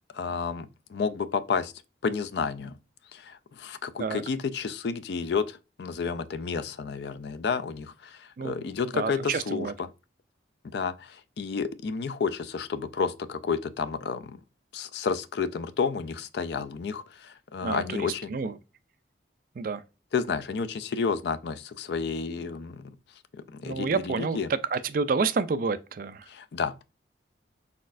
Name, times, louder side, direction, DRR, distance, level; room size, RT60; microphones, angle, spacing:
voice 1, 0.1-1.7 2.0-2.7 3.1-9.7 10.7-14.4 14.7-18.3 20.1-22.9 23.5-23.9 24.2-24.5 26.3-26.8, left 5 dB, 65° left, 0.4 m, -31 dB
voice 2, 8.4-9.7 17.6-18.6 19.6-19.8 23.6-26.3, right 4 dB, 50° right, 0.3 m, -29 dB
4.1 x 4.1 x 2.5 m
head